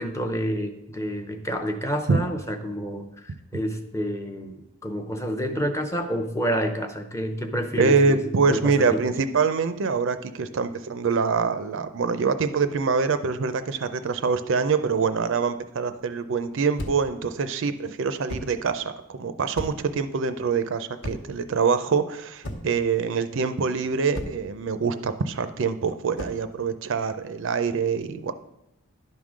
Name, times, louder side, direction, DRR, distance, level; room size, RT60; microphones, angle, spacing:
voice 1, 0.0-8.2 8.5-9.0, equal, 15° left, 5 dB, 0.6 m, -29 dB
voice 2, 7.8-18.8 19.1-28.3, right 5 dB, 55° right, 11 dB, 0.4 m, -25 dB
sound 1, 16.8-17.2 18.3-18.6 19.5-20.0 21.0-21.4 22.4-22.9 24.1-24.5 26.1-26.5, equal, 55° left, 1.0 m, -35 dB
11.0 x 3.7 x 6.2 m, 0.88 s
head